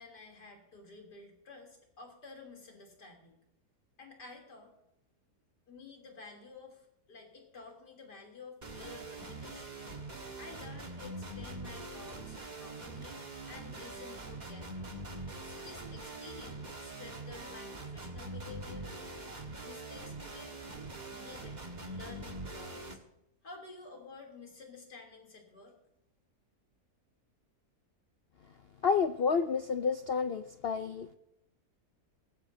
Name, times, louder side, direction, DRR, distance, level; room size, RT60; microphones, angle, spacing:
voice 1, 0.0-3.4 4.0-4.7 5.7-9.8 10.4-13.2 13.5-15.0 15.4-18.9 19.6-20.6 21.1-21.6 21.9-23.0 23.4-25.7, left 3 dB, 85° left, 1 dB, 3.8 m, -51 dB
sound 1, 8.6-22.9, right 2 dB, 25° right, 1.7 m, -43 dB
voice 2, 28.8-31.1, left 5 dB, 60° left, 9 dB, 0.6 m, -30 dB
19.5 x 15.0 x 2.7 m, 0.83 s
omnidirectional pair, 1.7 m